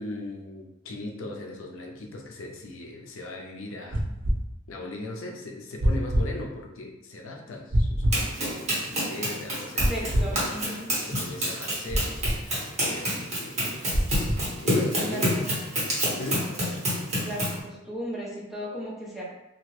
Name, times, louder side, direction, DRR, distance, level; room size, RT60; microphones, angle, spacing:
voice 1, 0.0-4.0 4.7-10.8 11.1-13.8 14.6-15.4 16.2-16.5, left 2 dB, 80° left, 1 dB, 0.5 m, -38 dB
sound 1, 3.9-4.4 5.8-6.3 7.7-8.2 9.8-10.3 11.9-12.4 13.9-14.4, equal, 60° right, 0.7 m, -24 dB
Run, 8.1-17.6, equal, 35° right, 1.2 m, -28 dB
voice 2, 9.9-10.9 15.0-15.4 17.1-19.2, equal, ahead, -7 dB, 0.8 m, -36 dB
2.9 x 2.4 x 3.2 m, 0.90 s
head